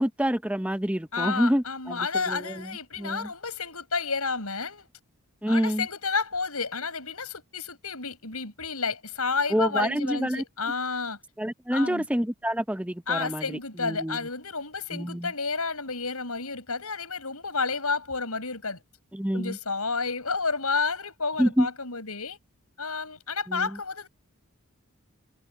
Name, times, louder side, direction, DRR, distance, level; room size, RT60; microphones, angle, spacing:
voice 1, 0.0-2.7 3.0-3.3 5.4-5.9 9.5-10.4 11.4-14.2 14.9-15.3 19.1-19.6 21.4-21.7 23.5-23.7, equal, 5° right, 0.9 m, -27 dB
voice 2, 1.1-4.9 5.5-11.2 11.7-12.1 13.1-18.8 19.3-22.4 22.8-24.1, left 4 dB, 80° left, 7.3 m, -31 dB
head